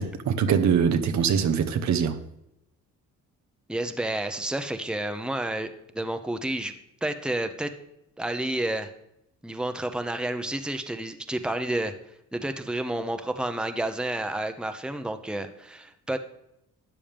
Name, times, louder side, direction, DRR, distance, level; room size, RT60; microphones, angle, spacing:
voice 1, 0.0-2.2, right 7 dB, 65° right, 1.0 m, -23 dB
voice 2, 3.7-6.7 7.0-7.7 8.2-8.9 9.4-11.9 12.3-16.2, right 1 dB, 5° right, 0.9 m, -30 dB
12.5 x 8.9 x 3.5 m
cardioid pair, 90°, 30 cm